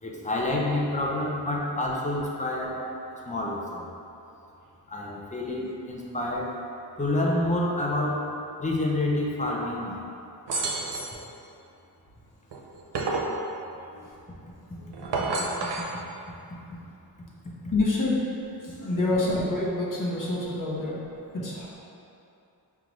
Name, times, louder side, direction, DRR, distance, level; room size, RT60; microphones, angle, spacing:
voice 1, 0.0-2.8 3.3-3.8 4.9-6.5 7.0-8.3 8.6-10.0, left 1 dB, 20° left, -2 dB, 0.5 m, -28 dB
sound 1, 10.5-11.2 12.5-13.4 14.9-15.9, right 3 dB, 90° right, 0.5 m, -29 dB
voice 2, 17.7-18.2 18.6-21.0 21.3-21.8, left 2 dB, 50° left, -5 dB, 0.9 m, -27 dB
4.9 x 2.4 x 3.0 m, 2.7 s
wide cardioid pair, 75°, 41 cm